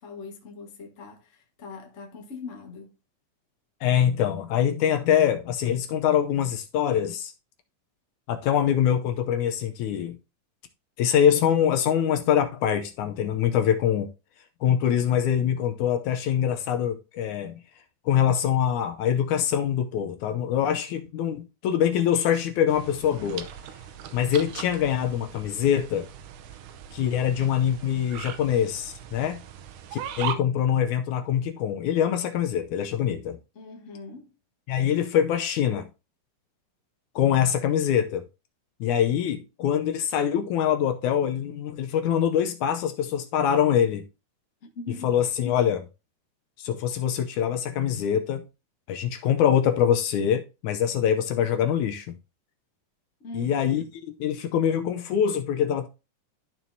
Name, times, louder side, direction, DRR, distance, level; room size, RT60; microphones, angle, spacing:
voice 1, 0.0-2.9 33.5-34.3 44.6-45.2 53.2-53.8, left 4 dB, 40° left, 1.0 m, -41 dB
voice 2, 3.8-7.3 8.3-10.2 11.0-14.1 14.6-17.6 18.1-23.5 24.1-26.1 26.9-29.4 29.9-33.4 34.7-35.9 37.2-38.2 38.8-44.0 45.0-45.9 46.6-48.5 48.9-52.1 53.3-55.9, left 9 dB, 75° left, 2.0 m, -24 dB
sound 1, 22.7-30.3, right 9 dB, 80° right, 2.3 m, -39 dB
13.0 x 4.5 x 2.7 m
omnidirectional pair, 3.7 m